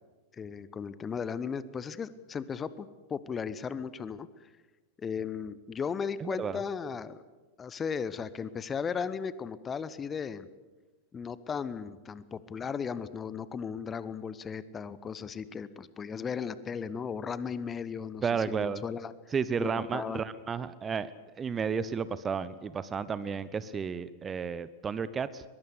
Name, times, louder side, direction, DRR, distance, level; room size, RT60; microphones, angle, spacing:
voice 1, 0.3-4.3 5.0-7.2 7.6-10.5 11.1-19.1 19.6-20.2, left 6 dB, 20° left, 16 dB, 1.0 m, -36 dB
voice 2, 6.2-6.6 18.2-18.8 19.3-21.1 21.4-25.4, right 6 dB, 20° right, 16 dB, 0.9 m, -32 dB
22.5 x 21.5 x 8.3 m, 1.2 s
figure-of-eight pair, 90°, 0 cm